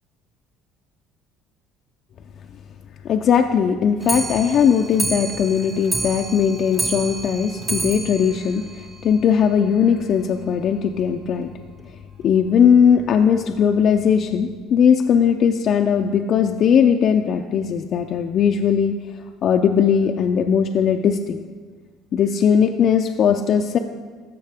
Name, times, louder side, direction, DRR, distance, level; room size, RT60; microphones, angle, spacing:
voice 1, 3.0-11.5 12.2-19.0 19.4-21.4 22.1-23.8, left 7 dB, 50° left, 4 dB, 0.4 m, -18 dB
Clock, 4.0-9.5 9.8-9.9 10.2-10.3 10.6-10.7 11.0-11.1 11.8-11.9 12.6-12.7 13.4-13.5, right 2 dB, 20° right, 0.8 m, -29 dB
14.5 x 5.7 x 3.5 m, 1.5 s
cardioid pair, 110°, 0 cm